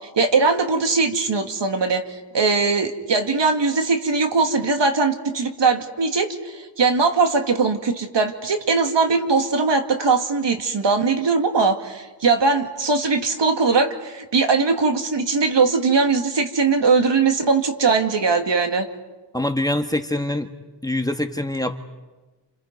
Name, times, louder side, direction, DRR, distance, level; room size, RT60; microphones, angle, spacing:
voice 1, 0.2-18.9, right 4 dB, 75° right, 5 dB, 2.2 m, -20 dB
voice 2, 19.3-20.5 20.8-21.8, left 1 dB, 10° left, 6 dB, 1.4 m, -24 dB
29.5 x 28.5 x 5.3 m, 1.2 s
wide cardioid pair, 115°, 43 cm